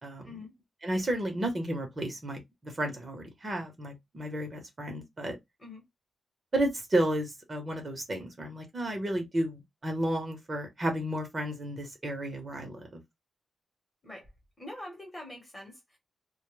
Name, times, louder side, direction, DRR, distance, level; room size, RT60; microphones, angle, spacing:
voice 1, 0.0-0.3 0.8-5.4 6.5-13.0, right 1 dB, 30° right, 0.9 m, -32 dB
voice 2, 14.6-16.0, left 1 dB, 20° left, 1.1 m, -44 dB
2.2 x 2.2 x 3.1 m
wide cardioid pair, 130°, 0 cm